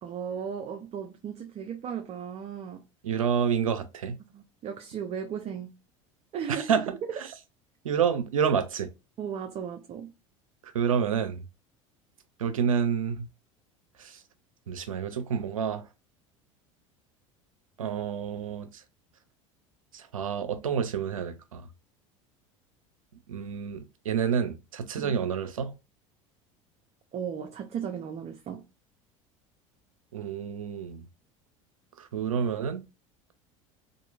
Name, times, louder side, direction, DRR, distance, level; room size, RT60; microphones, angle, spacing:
voice 1, 0.0-2.9 4.3-5.8 6.3-6.7 7.3-7.4 9.2-10.1 25.0-25.1 27.1-28.7, right 8 dB, 40° right, 0.5 m, -36 dB
voice 2, 3.0-4.2 6.5-6.9 7.2-7.3 7.8-8.9 10.6-11.4 12.4-13.3 14.0-14.2 14.7-15.9 17.8-18.8 19.9-21.7 23.3-25.7 30.1-31.0 32.0-32.8, right 7 dB, 85° right, 0.5 m, -29 dB
2.9 x 2.5 x 2.3 m
hypercardioid pair, 75°, 17 cm